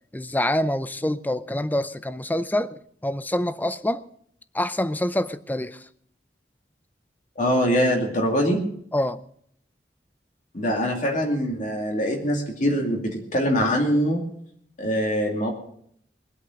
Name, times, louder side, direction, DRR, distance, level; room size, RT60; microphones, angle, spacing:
voice 1, 0.1-4.0 4.5-5.8 8.9-9.2, left 1 dB, 10° left, 0.6 m, -26 dB
voice 2, 7.4-8.6 10.5-14.2 14.8-15.5, equal, 45° left, 2.5 m, -23 dB
22.0 x 8.4 x 6.4 m
head